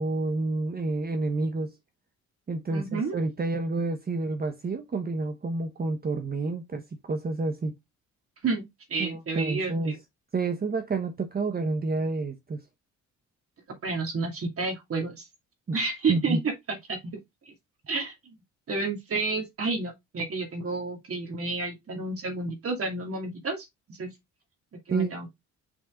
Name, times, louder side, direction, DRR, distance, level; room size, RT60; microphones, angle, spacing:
voice 1, 0.0-1.7 2.5-7.7 9.0-9.9 10.3-12.6 15.7-15.8 16.1-16.4 24.9-25.2, right 3 dB, 30° right, 1.1 m, -29 dB
voice 2, 2.7-3.2 8.4-10.0 13.8-15.3 15.7-16.5 16.9-17.2 17.5-17.6 17.9-18.1 18.7-24.1 24.9-25.3, right 3 dB, 50° right, 2.7 m, -30 dB
6.0 x 4.5 x 3.8 m
cardioid pair, 90°, 30 cm